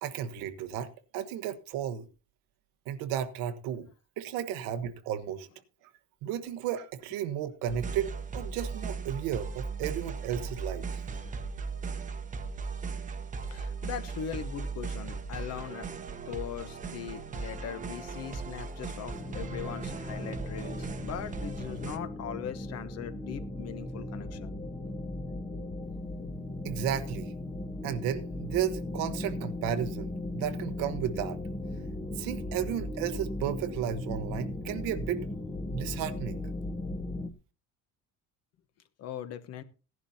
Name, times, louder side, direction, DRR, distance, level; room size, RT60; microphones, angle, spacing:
voice 1, 0.0-2.1 2.9-3.9 4.2-5.5 6.2-10.9 26.6-27.3 27.8-31.4 32.2-35.2 35.7-36.4, right 10 dB, 90° right, 1.2 m, -33 dB
sound 1, 7.7-22.0, right 4 dB, 25° right, 1.0 m, -38 dB
voice 2, 13.5-15.9 16.3-24.5 39.0-39.6, left 9 dB, 50° left, 1.1 m, -40 dB
sound 2, 19.1-37.3, left 1 dB, 10° left, 0.8 m, -37 dB
17.0 x 11.0 x 2.8 m
cardioid pair, 155°, 33 cm